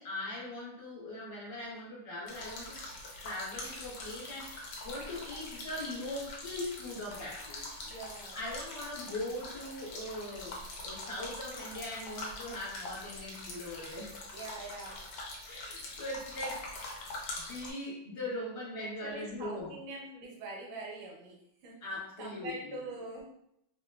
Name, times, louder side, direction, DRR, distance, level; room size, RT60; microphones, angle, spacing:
voice 1, 0.0-2.8 3.2-7.7 8.1-14.1 15.4-16.7 17.3-19.7 21.8-22.8, left 1 dB, 35° left, -6 dB, 1.3 m, -40 dB
sound 1, 2.3-17.7, left 2 dB, 65° left, 1.0 m, -44 dB
voice 2, 7.8-8.4 14.3-15.0 19.0-21.4 21.6-21.7 22.2-23.2, right 2 dB, 75° right, -2 dB, 1.6 m, -43 dB
3.3 x 2.9 x 2.2 m, 0.76 s
omnidirectional pair, 2.2 m